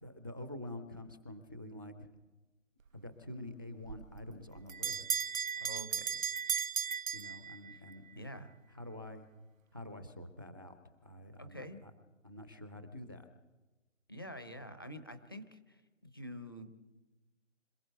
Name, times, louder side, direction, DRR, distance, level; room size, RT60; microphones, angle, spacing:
voice 1, 0.0-2.1 2.9-5.0 7.1-8.3 8.7-9.3 9.7-11.9 12.2-13.3, left 1 dB, 15° right, 10 dB, 0.6 m, -47 dB
Bell, 3.9-8.0, right 7 dB, 90° right, 0.8 m, -36 dB
voice 2, 5.6-6.0 7.7-7.8 8.2-8.6 11.4-11.8 14.1-16.7, equal, 20° left, 9 dB, 0.7 m, -47 dB
26.0 x 15.0 x 8.0 m, 1.1 s
figure-of-eight pair, 165°, 39 cm